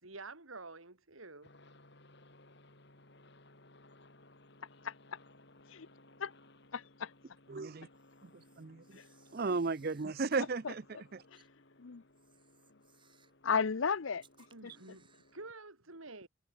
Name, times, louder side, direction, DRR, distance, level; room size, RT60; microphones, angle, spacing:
voice 1, 0.0-1.5 14.5-16.3, right 3 dB, 80° right, 3.8 m, -49 dB
sound 1, 1.4-15.5, left 2 dB, 55° left, 3.7 m, -62 dB
voice 2, 6.7-7.1 8.9-9.1 9.5-9.6 10.4-10.7 11.3-11.4 11.8-12.0 13.4-14.2 14.6-14.7, left 6 dB, 70° left, 0.7 m, -34 dB
voice 3, 7.5-7.9 8.2-8.8 9.3-10.8 11.1-11.2, right 4 dB, 45° right, 0.6 m, -35 dB
Camera, 7.9-10.5 11.3-11.5 12.1-13.4 14.1-15.4, right 7 dB, 25° right, 7.9 m, -68 dB
head